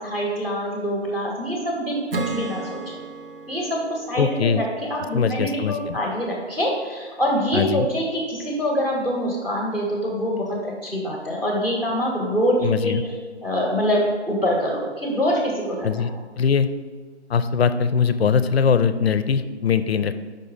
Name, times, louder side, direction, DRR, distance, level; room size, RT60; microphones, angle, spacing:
voice 1, 0.0-3.0 3.5-13.0 13.4-16.1, equal, 5° right, -2 dB, 0.8 m, -25 dB
Acoustic guitar / Strum, 2.1-5.6, right 3 dB, 55° right, 0.6 m, -34 dB
voice 2, 4.2-4.6 5.1-6.0 7.5-7.9 12.6-13.0 15.8-16.1 16.4-16.7 17.3-20.1, left 6 dB, 60° left, 12 dB, 0.5 m, -21 dB
5.4 x 4.2 x 5.3 m, 1.5 s
figure-of-eight pair, 150°, 35 cm